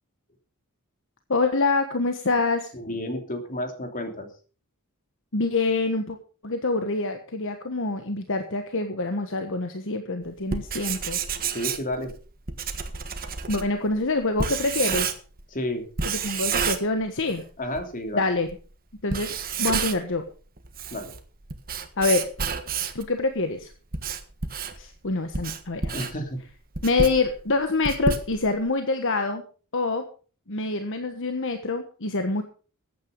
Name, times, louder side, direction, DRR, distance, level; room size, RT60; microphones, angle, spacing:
voice 1, 1.3-2.7 5.3-6.2 6.4-11.2 13.5-15.1 16.0-17.4 18.1-18.5 19.0-20.2 22.0-22.3 22.9-23.7 24.7-25.8 26.8-29.4 29.7-30.0 30.5-32.4, left 3 dB, 60° left, 6 dB, 1.3 m, -26 dB
voice 2, 2.7-4.3 11.5-12.1 15.5-15.9 17.6-18.2 20.9-21.1 25.8-26.4, left 1 dB, 40° left, 5 dB, 3.0 m, -31 dB
Writing, 10.4-15.5 16.0-17.4 17.8-17.9 18.5-18.6 19.0-20.2 20.6-23.1 23.6-28.7, right 5 dB, 40° right, 1.5 m, -30 dB
14.5 x 9.3 x 5.4 m, 0.39 s
head